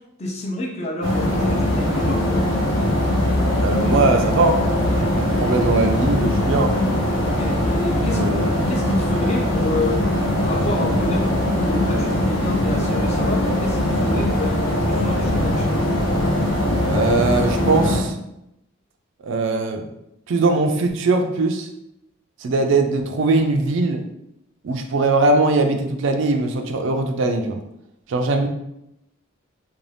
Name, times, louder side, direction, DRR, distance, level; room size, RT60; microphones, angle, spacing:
voice 1, 0.2-2.5 7.1-10.0 10.4-15.9, left 1 dB, 30° left, 0 dB, 0.5 m, -29 dB
sound 1, 1.0-18.0, left 1 dB, 70° left, 0.8 m, -21 dB
voice 2, 3.6-4.6 4.9-6.8 8.1-8.5 16.8-18.2 19.2-19.9 20.3-21.7 22.4-24.0 24.6-27.6 28.1-28.5, right 3 dB, 65° right, 5 dB, 0.4 m, -20 dB
2.6 x 2.2 x 3.2 m, 0.83 s
head